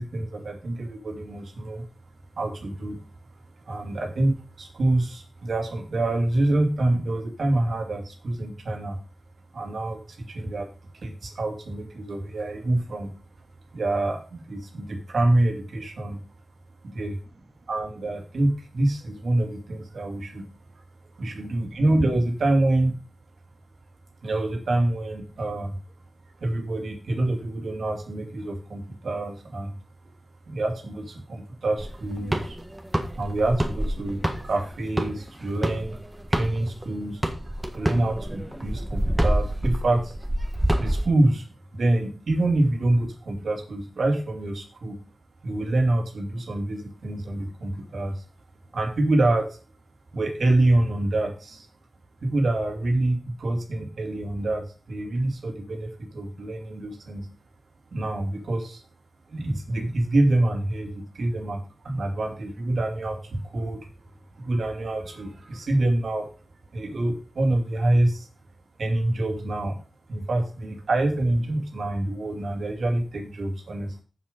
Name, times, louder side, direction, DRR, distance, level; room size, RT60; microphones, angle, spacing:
voice 1, 0.0-1.8 2.4-3.0 3.6-9.0 9.5-10.7 10.9-13.1 13.7-16.2 16.8-17.1 17.7-20.4 21.1-22.9 24.2-25.8 26.4-29.7 30.5-32.6 33.1-36.0 36.3-40.2 40.8-41.5 41.7-45.0 45.4-48.2 48.7-49.6 50.1-51.7 52.2-57.3 57.9-58.8 59.3-63.9 64.3-66.3 66.7-68.3 68.8-69.8 70.1-74.0, right 2 dB, 75° right, 4 dB, 2.4 m, -26 dB
sound 1, 31.8-36.8 37.2-41.1, right 1 dB, 10° right, 1.6 m, -27 dB
7.3 x 7.3 x 5.3 m, 0.36 s
wide cardioid pair, 85°, 0 cm